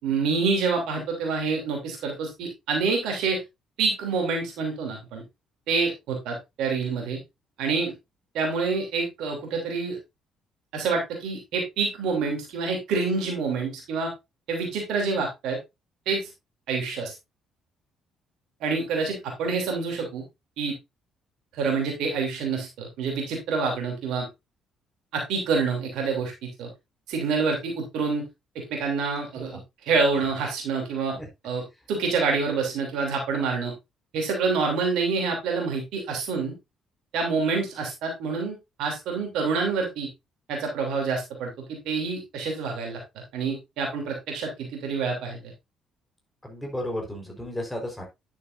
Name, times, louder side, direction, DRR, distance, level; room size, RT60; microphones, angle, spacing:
voice 1, 0.0-3.4 3.8-5.2 5.7-7.2 7.6-7.9 8.3-10.0 10.7-14.1 14.5-15.6 16.1-16.2 16.7-17.1 18.6-20.2 20.6-20.7 21.5-24.3 25.1-26.7 27.1-28.2 28.5-31.2 31.4-33.7 34.1-36.5 37.1-40.1 40.5-43.0 43.3-45.5, right 4 dB, 60° right, 1 dB, 3.0 m, -27 dB
voice 2, 46.4-48.0, left 1 dB, 10° left, 1 dB, 4.2 m, -34 dB
10.5 x 7.2 x 2.6 m, 0.22 s
figure-of-eight pair, 45°, 0 cm